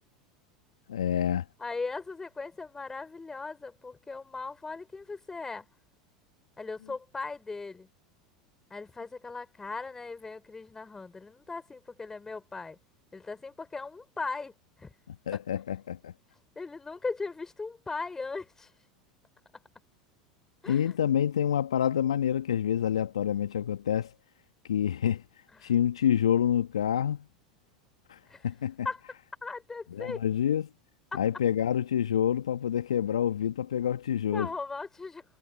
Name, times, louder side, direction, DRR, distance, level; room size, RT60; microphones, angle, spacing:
voice 1, 0.9-1.4 15.3-16.1 20.7-24.1 24.7-25.2 25.6-27.2 28.1-28.2 28.4-28.7 29.9-30.7 31.1-34.5, left 9 dB, 75° left, 1.5 m, -27 dB
voice 2, 1.6-5.7 6.6-7.9 8.7-12.8 13.1-14.5 14.8-14.9 15.3-15.4 16.6-18.7 20.6-20.9 25.5-25.7 28.3-28.5 28.8-29.0 29.4-30.2 31.1-31.2 34.3-35.2, left 4 dB, 15° left, 5.6 m, -38 dB
figure-of-eight pair, 80°, 3 cm